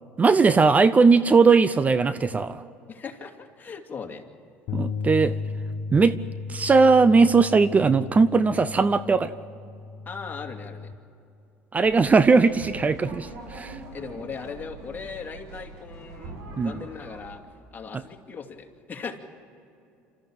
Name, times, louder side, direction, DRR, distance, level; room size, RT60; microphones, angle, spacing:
voice 1, 0.2-2.6 4.7-5.3 5.9-6.2 6.5-9.3 11.7-13.8 16.6-16.8, right 4 dB, 25° right, 14 dB, 0.7 m, -19 dB
voice 2, 2.9-4.2 10.1-10.9 13.9-17.4 17.7-19.2, left 5 dB, 35° left, 3 dB, 2.6 m, -38 dB
sound 1, 4.7-10.9, left 4 dB, 70° left, 1.1 m, -35 dB
sound 2, 11.8-17.4, right 2 dB, 70° right, 5.9 m, -42 dB
27.5 x 14.0 x 8.9 m, 2.6 s
supercardioid pair, 80°, 6 cm